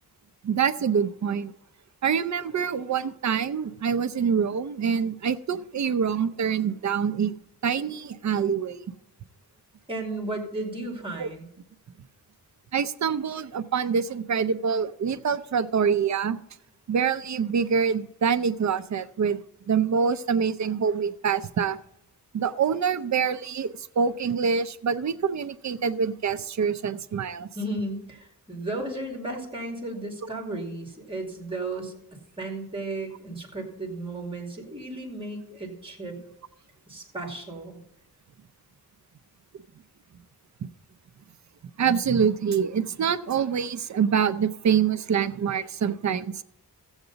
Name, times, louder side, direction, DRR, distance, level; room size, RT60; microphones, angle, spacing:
voice 1, 0.4-1.5 2.0-7.3 7.6-8.8 11.2-11.3 12.7-16.4 16.9-19.4 19.7-21.8 22.3-27.5 40.6-40.7 41.8-46.4, right 7 dB, 50° right, 12 dB, 0.5 m, -25 dB
voice 2, 9.9-11.5 27.6-31.9 32.4-36.2 36.9-37.8, right 2 dB, 15° right, 1 dB, 2.4 m, -34 dB
14.0 x 8.0 x 4.0 m, 0.83 s
wide cardioid pair, 150°, 36 cm